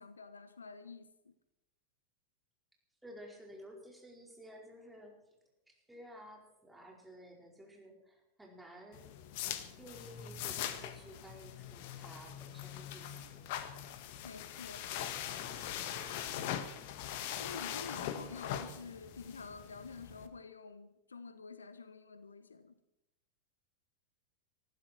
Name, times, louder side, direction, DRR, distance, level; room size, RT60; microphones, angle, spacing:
voice 1, 0.0-1.3 14.2-14.9 17.4-22.8, left 4 dB, 75° left, 1.0 m, -49 dB
voice 2, 3.0-5.2 5.7-9.1 9.8-13.4, equal, 5° right, 4.8 m, -53 dB
sound 1, 8.9-20.3, left 10 dB, 50° left, 1.6 m, -42 dB
20.0 x 14.5 x 4.6 m
figure-of-eight pair, 90°, 0 cm